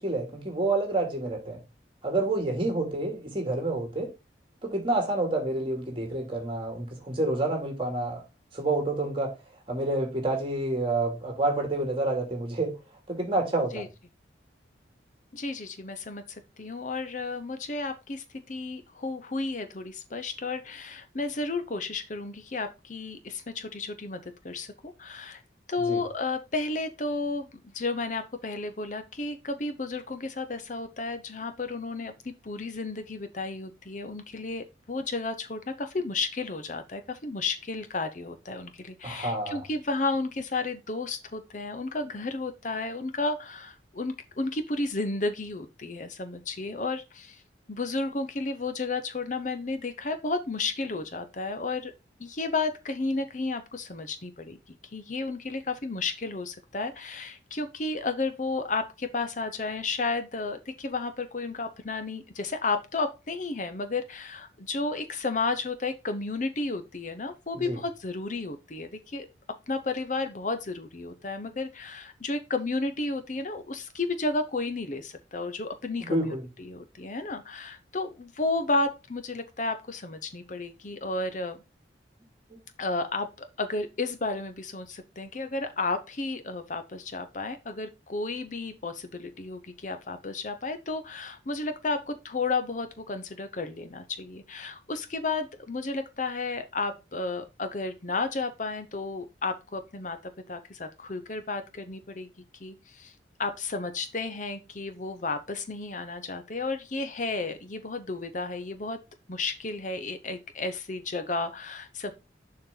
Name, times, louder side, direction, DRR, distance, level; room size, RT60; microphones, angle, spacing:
voice 1, 0.0-1.6 2.0-4.1 4.6-8.2 8.5-9.3 9.7-12.8 13.1-13.9 25.9-26.0 39.0-39.6 67.5-67.8 76.1-76.5, right 2 dB, 30° right, 2.5 m, -28 dB
voice 2, 15.3-25.4 25.7-47.4 47.7-51.9 52.2-69.3 69.7-81.6 82.8-102.3 102.6-103.1 103.4-109.0 109.3-112.1, left 3 dB, 40° left, 0.8 m, -32 dB
7.0 x 5.7 x 3.8 m
head